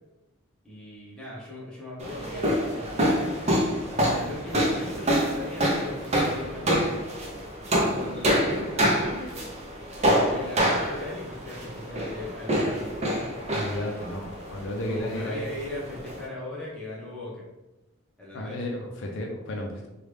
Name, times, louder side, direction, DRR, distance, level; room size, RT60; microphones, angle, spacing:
voice 1, 0.6-3.3 3.9-7.0 7.8-9.3 10.0-13.1 14.9-17.5 18.2-18.6, left 1 dB, 5° left, -7 dB, 0.8 m, -38 dB
sound 1, 2.0-16.3, equal, 30° right, 0.6 m, -27 dB
voice 2, 13.5-15.5 18.3-19.9, left 1 dB, 60° left, 1 dB, 0.5 m, -33 dB
3.3 x 2.3 x 3.3 m, 1.0 s
head